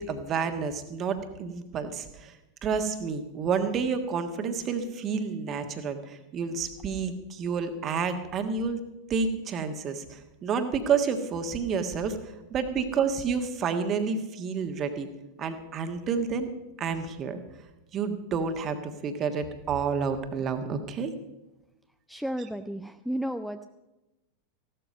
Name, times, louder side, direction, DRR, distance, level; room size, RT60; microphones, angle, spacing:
voice 1, 0.0-2.3 2.6-8.8 9.1-12.2 12.5-15.1 15.4-16.5 16.8-17.4 17.9-21.1, right 5 dB, 30° right, 7 dB, 1.5 m, -29 dB
voice 2, 22.1-23.6, equal, ahead, 7 dB, 0.5 m, -33 dB
15.5 x 12.5 x 5.4 m, 1.0 s
figure-of-eight pair, 90°, 0 cm